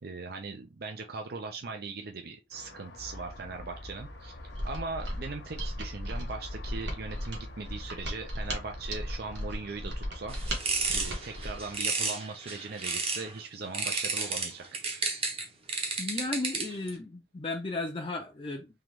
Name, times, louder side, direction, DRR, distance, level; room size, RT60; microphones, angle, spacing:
voice 1, 0.0-4.4 4.6-10.4 10.9-14.6, right 4 dB, 60° right, 0.5 m, -39 dB
sound 1, 2.5-11.8, left 1 dB, 70° left, 0.9 m, -45 dB
Mechanisms, 4.5-11.7, equal, 85° right, 1.3 m, -36 dB
sound 2, 10.3-13.3 13.7-16.9, right 4 dB, 35° right, 0.9 m, -32 dB
voice 2, 16.0-18.7, left 2 dB, 30° left, 0.5 m, -34 dB
3.8 x 2.9 x 3.2 m
head